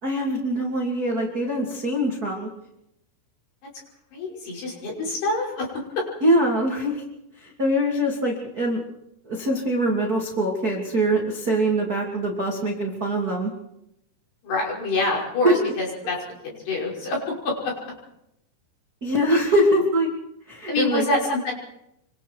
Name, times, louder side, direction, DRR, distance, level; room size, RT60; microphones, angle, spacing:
voice 1, 0.0-2.5 6.2-7.0 7.4-8.8 9.3-13.5 15.4-15.5 19.0-20.1 20.5-21.0, right 1 dB, 30° right, -1 dB, 1.9 m, -23 dB
voice 2, 4.1-5.7 6.0-6.1 14.4-17.2 17.4-17.7 20.6-21.5, left 2 dB, 55° left, -2 dB, 7.5 m, -26 dB
26.5 x 24.5 x 4.7 m, 0.83 s
omnidirectional pair, 5.8 m